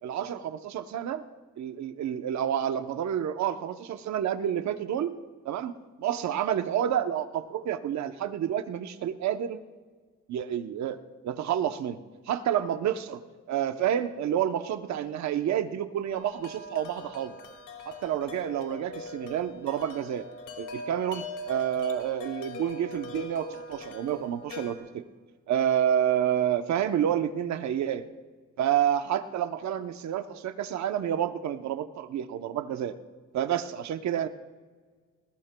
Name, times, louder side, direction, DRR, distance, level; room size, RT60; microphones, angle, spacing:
voice 1, 0.0-1.2 1.6-5.2 5.4-9.6 10.3-12.0 12.3-13.2 13.5-17.3 17.9-20.2 20.6-25.0 25.5-28.1 28.6-33.0 33.3-34.3, right 10 dB, 65° right, 9 dB, 0.8 m, -29 dB
Wind chime, 16.1-24.8, left 2 dB, 90° left, 2.2 m, -41 dB
20.0 x 19.0 x 2.3 m, 1.5 s
cardioid pair, 90°, 30 cm